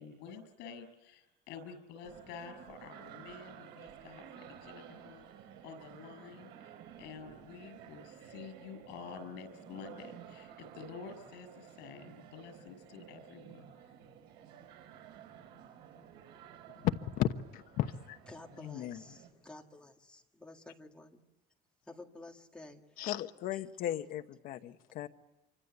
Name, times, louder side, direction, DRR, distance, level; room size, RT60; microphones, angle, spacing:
voice 1, 0.0-5.3 5.6-6.7 7.0-13.9, left 5 dB, 80° left, 11 dB, 6.6 m, -49 dB
sound 1, 2.0-19.3, right 9 dB, 90° right, 5.6 m, -53 dB
voice 2, 16.8-18.2 18.6-19.0 23.0-25.1, left 12 dB, 55° left, 6 dB, 1.1 m, -35 dB
voice 3, 18.3-21.2 21.9-23.1 23.5-23.6, left 2 dB, 5° left, 1 dB, 1.8 m, -52 dB
27.0 x 25.0 x 8.1 m, 1.0 s
cardioid pair, 180°, 17 cm